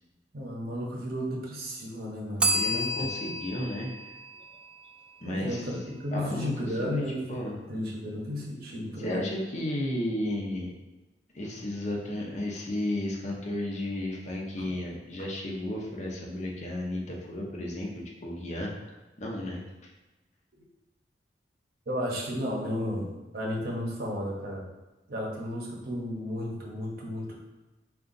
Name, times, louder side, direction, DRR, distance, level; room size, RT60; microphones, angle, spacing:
voice 1, 0.3-3.1 5.2-9.2 11.5-11.6 14.6-14.8 21.9-24.6 25.1-27.4, equal, 60° right, -2 dB, 0.8 m, -34 dB
Bell, 2.4-5.2, equal, 5° right, 0.3 m, -31 dB
voice 2, 2.5-3.9 5.2-5.6 6.1-6.5 6.8-7.0 7.3-7.6 9.0-10.7 11.3-18.7 19.2-19.6, left 1 dB, 40° left, -1 dB, 0.7 m, -33 dB
3.7 x 2.3 x 3.8 m, 1.1 s
head